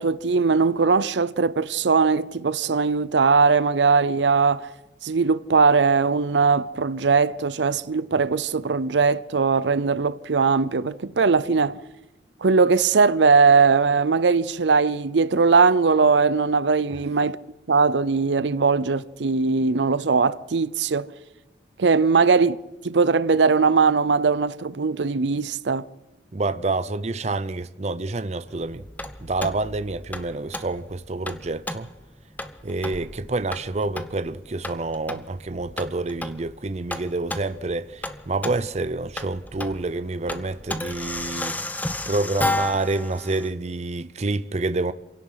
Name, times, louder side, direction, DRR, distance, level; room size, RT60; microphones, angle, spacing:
voice 1, 0.0-4.7 5.0-11.8 12.4-17.4 17.7-21.1 21.8-22.6 22.8-25.8, right 4 dB, 80° right, 0.6 m, -20 dB
voice 2, 26.3-28.8 29.2-31.9 32.6-41.6 42.1-44.9, right 2 dB, 40° right, 0.6 m, -28 dB
sound 1, 28.5-43.5, left 2 dB, 10° left, 0.9 m, -33 dB
27.0 x 17.0 x 5.7 m
head